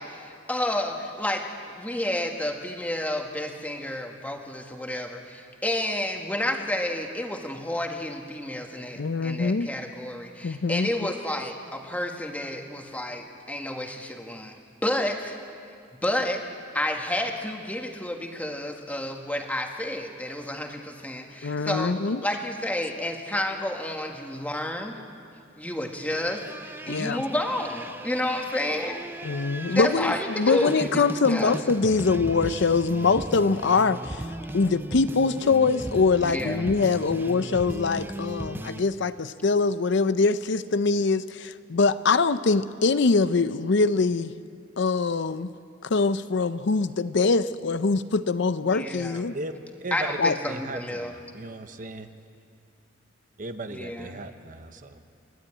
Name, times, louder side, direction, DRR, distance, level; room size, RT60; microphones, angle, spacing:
voice 1, 0.0-1.4 1.8-15.3 16.0-16.4 16.7-24.9 25.6-29.0 29.7-31.5 36.2-36.6 48.7-49.2 49.9-51.1 53.7-54.2, left 1 dB, 10° left, 3 dB, 1.7 m, -30 dB
voice 2, 9.0-9.7 10.4-10.9 21.4-22.2 26.9-27.2 29.2-34.3 34.5-44.3 44.8-45.5 45.8-49.3 50.2-50.4, left 4 dB, 60° left, 13 dB, 0.6 m, -23 dB
sound 1, 26.1-38.8, right 1 dB, 10° right, 0.6 m, -37 dB
voice 3, 49.8-50.2 50.5-52.1 53.4-55.0, right 2 dB, 45° right, 8 dB, 1.0 m, -37 dB
29.5 x 12.0 x 8.9 m, 2.5 s
head